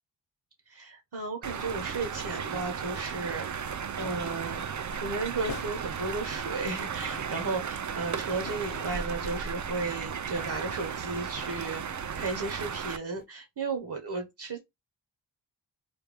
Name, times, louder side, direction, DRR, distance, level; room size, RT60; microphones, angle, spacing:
voice 1, 0.7-14.6, right 3 dB, 60° right, 1.0 m, -34 dB
sound 1, 1.4-13.0, right 7 dB, 45° right, 0.4 m, -35 dB
sound 2, 3.8-4.6 5.0-6.2 6.9-9.6 10.1-12.8 13.2-13.3, left 5 dB, 50° left, 0.7 m, -48 dB
3.4 x 2.2 x 3.3 m
wide cardioid pair, 70°, 45 cm